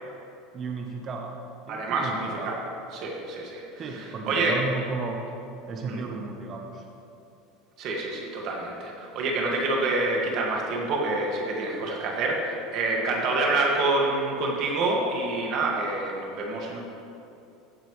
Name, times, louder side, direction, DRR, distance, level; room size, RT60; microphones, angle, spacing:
voice 1, 0.5-1.4 1.6-2.5 3.8-5.2 5.7-6.8, right 4 dB, 30° right, 2 dB, 1.0 m, -34 dB
voice 2, 1.7-2.6 2.9-4.6 5.9-6.0 7.8-16.8, right 2 dB, 50° right, -1 dB, 2.0 m, -27 dB
15.0 x 8.8 x 3.2 m, 2.7 s
supercardioid pair, 145°, 0 cm